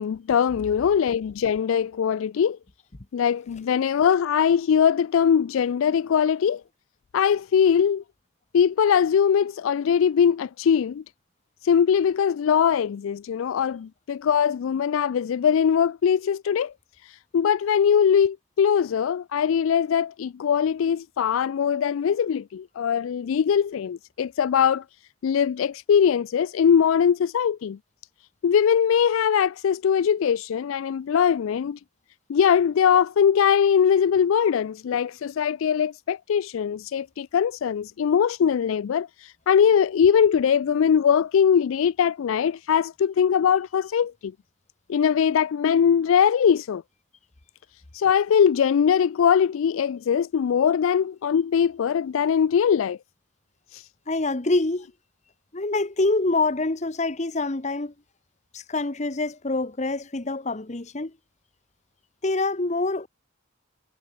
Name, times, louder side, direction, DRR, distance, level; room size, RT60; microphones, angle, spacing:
voice 1, 0.0-2.6 3.1-6.6 7.1-8.0 8.5-11.0 11.6-16.7 17.3-24.8 25.2-27.8 28.4-31.8 32.3-39.1 39.5-44.3 44.9-46.8 47.9-53.0 53.7-53.8, left 7 dB, 75° left, 0.3 m, -21 dB
voice 2, 54.1-54.9 55.5-57.9 58.5-61.1 62.2-63.1, left 2 dB, 35° left, 1.0 m, -25 dB
head